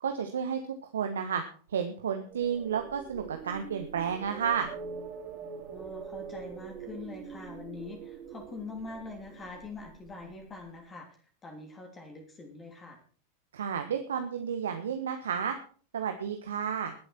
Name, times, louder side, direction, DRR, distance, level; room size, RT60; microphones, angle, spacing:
voice 1, 0.0-0.6 0.9-1.4 1.7-4.7 13.5-15.5 15.9-16.9, right 7 dB, 65° right, 6 dB, 1.4 m, -31 dB
sound 1, 2.3-10.3, right 6 dB, 35° right, 3.9 m, -44 dB
voice 2, 5.4-13.0, left 3 dB, 20° left, 3 dB, 3.2 m, -44 dB
21.0 x 8.0 x 4.4 m, 0.42 s
figure-of-eight pair, 90°, 0 cm